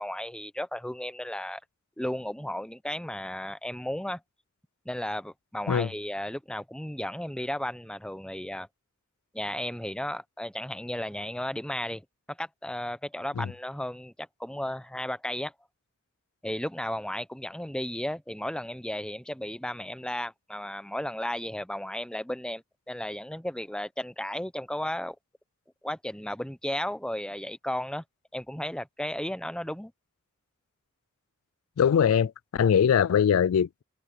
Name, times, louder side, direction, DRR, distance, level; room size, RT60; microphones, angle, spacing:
voice 1, 0.0-1.6 2.0-4.2 4.8-8.7 9.3-12.0 12.4-15.5 16.4-25.2 25.8-28.0 28.3-29.9, left 1 dB, 5° left, 0.8 m, -34 dB
voice 2, 31.8-33.8, left 8 dB, 90° left, 0.4 m, -22 dB
head